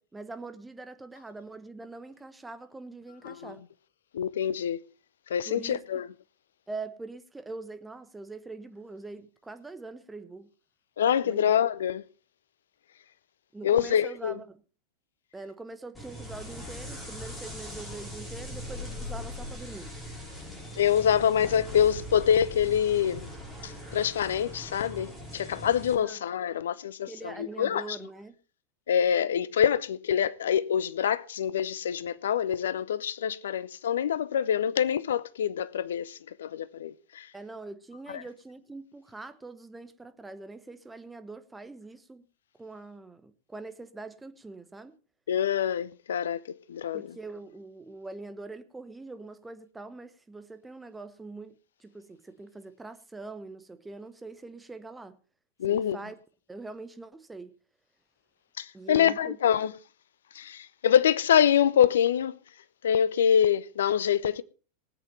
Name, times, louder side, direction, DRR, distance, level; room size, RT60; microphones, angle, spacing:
voice 1, 0.0-3.6 5.5-6.0 6.7-10.5 11.2-11.5 13.5-14.6 15.3-19.9 26.0-26.2 27.1-28.4 37.3-42.2 42.6-44.9 46.9-55.2 55.7-56.2 56.5-57.6 58.7-59.4, right 3 dB, 10° right, 1.0 m, -43 dB
voice 2, 4.1-4.8 5.3-6.1 11.0-12.0 13.6-14.4 20.8-23.3 23.6-28.0 28.9-37.3 45.3-47.0 55.6-56.0 58.6-59.7 60.3-62.4 62.8-64.4, left 9 dB, 60° left, 0.6 m, -25 dB
sound 1, 15.9-25.9, left 1 dB, 10° left, 5.7 m, -41 dB
19.0 x 8.2 x 4.3 m
figure-of-eight pair, 90°, 0 cm